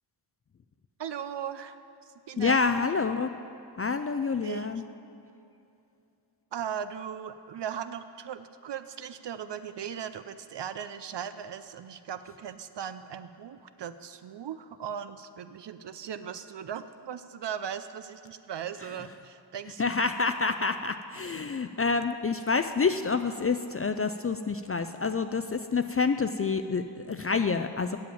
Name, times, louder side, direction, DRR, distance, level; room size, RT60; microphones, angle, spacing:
voice 1, 1.0-1.8 2.3-2.6 4.4-4.7 6.5-19.9, right 8 dB, 65° right, 11 dB, 0.5 m, -38 dB
voice 2, 2.4-3.4 3.8-4.8 19.8-28.0, left 4 dB, 30° left, 9 dB, 0.4 m, -28 dB
7.8 x 7.2 x 8.5 m, 2.7 s
cardioid pair, 45°, 46 cm